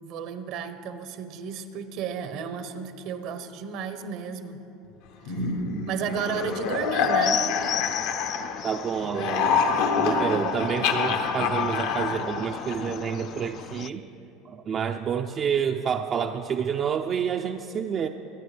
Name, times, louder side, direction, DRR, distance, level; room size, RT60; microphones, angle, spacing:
voice 1, 0.0-4.6 5.3-5.5 5.9-7.5 10.1-10.7, right 6 dB, 60° right, 10 dB, 1.0 m, -33 dB
sound 1, 5.3-8.8 9.0-13.1, left 5 dB, 75° left, 1.1 m, -26 dB
sound 2, 6.1-13.9, left 11 dB, 50° left, 0.4 m, -36 dB
voice 2, 8.6-14.0 14.5-18.1, right 7 dB, 40° right, 5 dB, 0.5 m, -29 dB
24.5 x 9.4 x 3.4 m, 2.9 s
hypercardioid pair, 90°, 0 cm